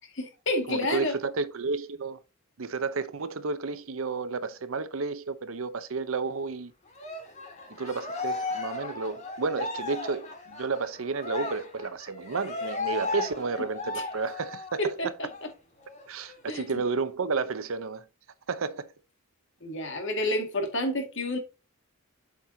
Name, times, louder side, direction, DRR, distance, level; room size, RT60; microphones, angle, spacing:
voice 1, 0.2-1.1 14.8-15.3 16.5-16.7 19.6-21.4, left 1 dB, 60° left, 2.0 m, -29 dB
voice 2, 0.7-2.2 2.6-6.7 7.7-15.1 16.1-18.0 18.5-18.9, right 4 dB, 70° right, 0.7 m, -31 dB
Cheering, 6.9-14.9 15.3-15.5 15.8-16.8, left 3 dB, 35° left, 1.9 m, -36 dB
8.4 x 5.9 x 2.7 m
head